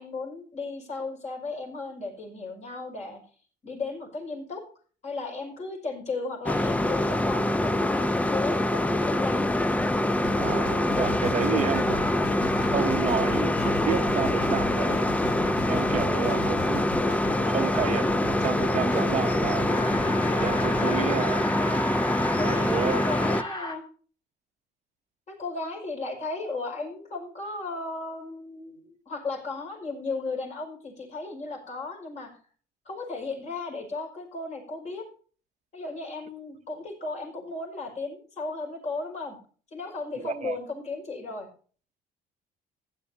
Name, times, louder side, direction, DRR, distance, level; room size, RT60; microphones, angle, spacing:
voice 1, 0.0-3.2 3.6-4.6 5.0-9.5 11.5-11.8 16.3-16.5 20.8-21.2 22.3-23.8 25.3-32.3 32.9-35.1 35.7-39.4 39.7-41.5, left 3 dB, 45° left, 5.7 m, -35 dB
sound 1, 6.5-23.4, left 1 dB, 10° left, 0.6 m, -25 dB
sound 2, 10.2-20.9, left 5 dB, 80° left, 1.9 m, -38 dB
voice 2, 10.4-12.0 12.4-15.1 15.7-16.8 17.4-19.7 20.4-21.4 22.4-23.0 40.2-40.6, right 8 dB, 40° right, 0.8 m, -30 dB
sound 3, 19.6-23.8, left 1 dB, 25° left, 2.4 m, -34 dB
15.0 x 11.0 x 2.8 m
cardioid pair, 110°, 17 cm